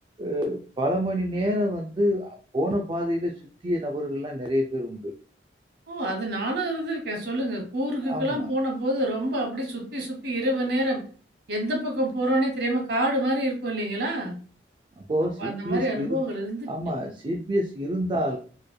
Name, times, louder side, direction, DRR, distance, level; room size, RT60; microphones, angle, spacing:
voice 1, 0.2-3.3 3.6-5.1 8.0-8.5 15.0-16.2 16.7-18.4, equal, 25° right, 3 dB, 0.4 m, -27 dB
voice 2, 5.9-11.0 11.5-14.4 15.4-16.7, right 1 dB, 65° right, 1 dB, 1.3 m, -27 dB
4.3 x 3.2 x 2.2 m, 0.40 s
head